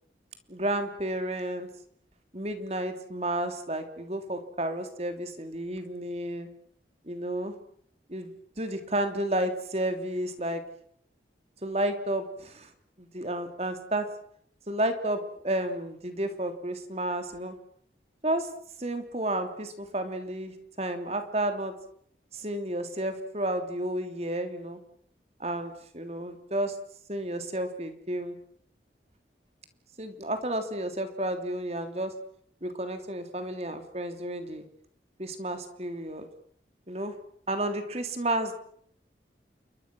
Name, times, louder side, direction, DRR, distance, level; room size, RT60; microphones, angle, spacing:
voice 1, 0.5-1.7 2.3-6.5 7.1-7.5 8.1-10.6 11.6-12.7 13.0-14.1 14.7-17.5 18.2-18.5 18.8-21.7 22.3-24.8 25.4-26.7 27.1-28.3 30.0-32.1 32.6-34.6 35.2-36.3 36.9-37.1 37.5-38.5, right 1 dB, 35° right, 7 dB, 3.1 m, -31 dB
29.5 x 23.5 x 6.2 m, 0.65 s
head